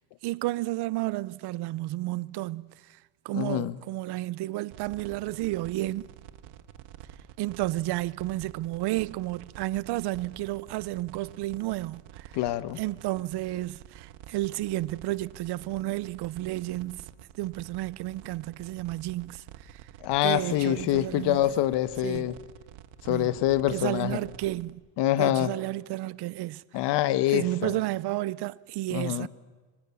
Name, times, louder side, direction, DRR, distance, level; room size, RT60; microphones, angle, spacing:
voice 1, 0.2-2.7 3.2-6.1 7.4-12.3 12.8-17.0 17.4-19.8 20.2-21.4 22.0-22.3 23.1-23.3 23.7-24.8 25.2-26.6 27.3-29.3, right 17 dB, 60° right, 0.8 m, -32 dB
voice 2, 3.3-3.7 12.4-12.8 20.0-22.3 23.0-24.2 25.0-25.5 26.7-27.7 28.9-29.3, left 13 dB, 60° left, 1.3 m, -25 dB
sound 1, 4.7-24.7, right 11 dB, 90° right, 1.5 m, -48 dB
25.5 x 24.5 x 7.1 m
cardioid pair, 130°, 46 cm